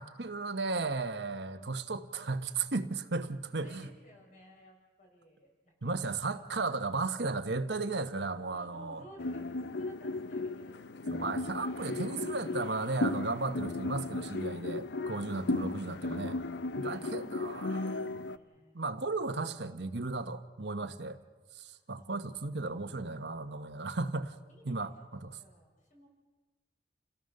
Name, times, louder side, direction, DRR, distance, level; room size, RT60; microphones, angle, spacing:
voice 1, 0.0-3.9 5.8-9.0 11.1-16.4 16.8-17.8 18.7-21.2 21.5-24.3 24.6-25.4, right 3 dB, 75° right, 1.1 m, -35 dB
voice 2, 3.6-6.0 6.3-6.8 8.2-11.5 16.8-18.8 21.6-22.6 24.5-24.9 25.4-26.1, equal, 45° left, 5.9 m, -58 dB
sound 1, 9.2-18.4, left 2 dB, 80° left, 0.7 m, -35 dB
29.0 x 17.0 x 6.7 m
head